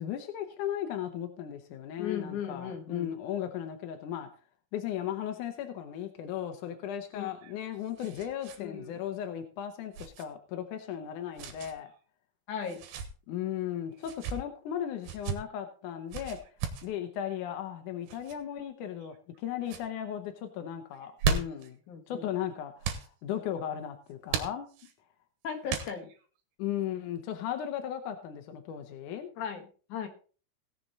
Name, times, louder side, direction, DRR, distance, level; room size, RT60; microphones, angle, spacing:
voice 1, 0.0-4.3 4.7-11.9 13.3-16.4 16.8-21.8 22.1-24.7 26.6-29.3, left 10 dB, 75° left, 5 dB, 1.8 m, -36 dB
voice 2, 2.0-3.1 7.1-7.3 8.6-9.0 12.5-12.8 21.9-22.2 25.4-26.1 29.4-30.1, left 7 dB, 60° left, 4 dB, 2.4 m, -37 dB
sound 1, 7.3-8.6 8.9-9.0 9.9-10.2 11.4-11.7 12.6-13.1 14.0-14.4 15.0-15.4 16.1-16.9 18.1-18.4 19.0-19.4 19.6-19.9 20.9-21.7 22.8-23.1 24.3-24.9 25.7-26.2, right 6 dB, 80° right, 3.3 m, -35 dB
17.0 x 7.0 x 4.1 m, 0.38 s
omnidirectional pair, 5.0 m